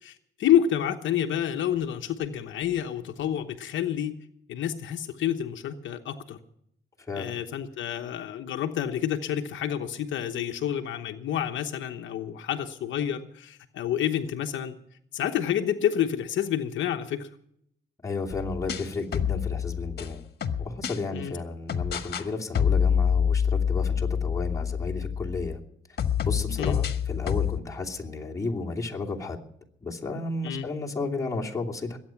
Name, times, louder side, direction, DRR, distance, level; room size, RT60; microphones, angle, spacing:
voice 1, 0.0-4.2 4.5-6.4 7.1-14.7 15.1-17.3 21.1-21.3 26.5-26.8 30.4-30.6, left 10 dB, 75° left, 6 dB, 1.0 m, -28 dB
voice 2, 7.1-7.4 18.0-20.2 20.6-25.6 26.2-29.4 29.8-32.0, left 3 dB, 15° left, -2 dB, 2.8 m, -33 dB
sound 1, 18.3-21.0 21.7-22.3 22.5-25.5 26.0-27.6, left 7 dB, 55° left, 1.6 m, -27 dB
22.0 x 9.0 x 5.8 m, 0.71 s
cardioid pair, 90°, 20 cm